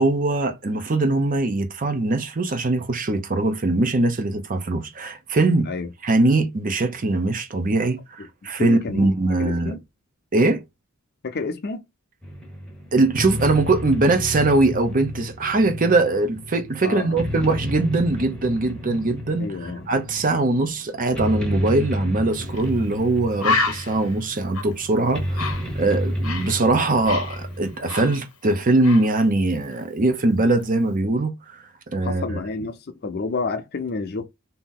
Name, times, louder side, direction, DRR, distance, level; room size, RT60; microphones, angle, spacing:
voice 1, 0.0-5.7 6.0-8.2 8.4-9.8 10.3-10.6 12.9-31.3 31.9-32.4, right 2 dB, 40° right, 0.7 m, -21 dB
voice 2, 8.6-9.1 9.4-9.8 11.2-11.8 16.8-17.2 19.4-19.8 32.0-34.3, left 4 dB, 50° left, 0.6 m, -29 dB
sound 1, 12.2-27.8, equal, 5° left, 0.9 m, -31 dB
Bird, 22.5-22.7 23.0-23.1 23.4-26.6 26.8-28.5 28.8-29.1, left 4 dB, 80° left, 0.9 m, -28 dB
2.9 x 2.6 x 3.7 m
head